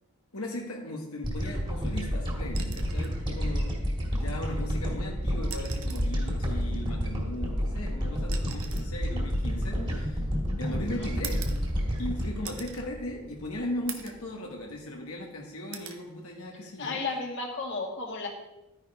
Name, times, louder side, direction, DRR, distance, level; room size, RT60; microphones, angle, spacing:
voice 1, 0.3-3.8 4.1-10.3 10.6-11.6 12.0-17.0, left 1 dB, 85° left, -1 dB, 1.6 m, -38 dB
sound 1, 1.2-13.7, equal, 25° right, 2.1 m, -30 dB
sound 2, 2.5-3.2 4.6-4.7 5.4-6.2 7.3-10.4 11.2-12.1 12.4-12.9 13.3-13.4 13.9-14.3 14.7-15.3 15.7-16.0 17.5-17.7, right 9 dB, 70° right, 1.1 m, -43 dB
voice 2, 10.7-11.1 16.8-18.3, left 3 dB, 55° left, 0 dB, 2.0 m, -34 dB
12.5 x 9.9 x 3.5 m, 0.97 s
head